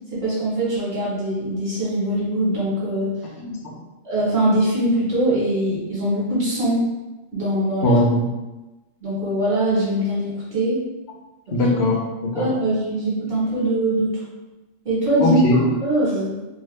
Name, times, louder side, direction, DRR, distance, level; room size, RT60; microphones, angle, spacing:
voice 1, 0.1-3.1 4.0-6.9 7.3-7.9 9.0-10.8 12.3-14.1 14.8-16.4, right 1 dB, 50° right, -9 dB, 1.1 m, -22 dB
voice 2, 3.4-3.8 7.8-8.2 11.5-12.5 15.2-15.6, left 1 dB, 60° left, -1 dB, 0.8 m, -20 dB
2.8 x 2.3 x 3.1 m, 1.1 s
omnidirectional pair, 1.3 m